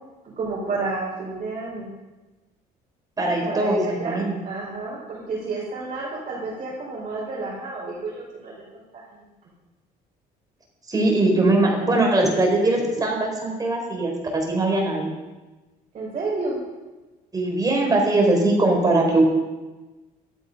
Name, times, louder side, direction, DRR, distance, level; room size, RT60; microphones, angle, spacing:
voice 1, 0.2-1.9 3.4-9.2 15.9-16.6, right 3 dB, 40° right, -5 dB, 5.1 m, -31 dB
voice 2, 3.2-4.4 10.9-15.1 17.3-19.2, right 2 dB, 20° right, 0 dB, 4.7 m, -21 dB
13.0 x 12.0 x 5.5 m, 1.2 s
cardioid pair, 110°, 17 cm